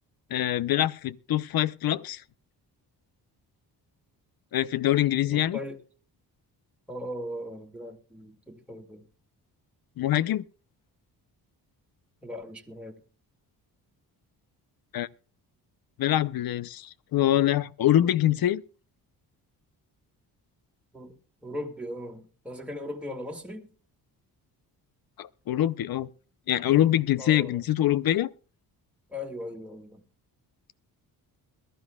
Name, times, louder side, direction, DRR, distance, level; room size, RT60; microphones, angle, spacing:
voice 1, 0.3-2.2 4.5-5.6 10.0-10.4 14.9-15.1 16.0-18.6 25.2-26.1 26.5-28.3, left 12 dB, 60° left, 0.7 m, -24 dB
voice 2, 5.3-5.8 6.9-9.1 12.2-13.0 20.9-21.1 21.4-23.7 27.2-27.6 29.1-30.0, left 1 dB, 5° right, 2.1 m, -38 dB
22.0 x 12.5 x 2.3 m
cardioid pair, 80°, 40 cm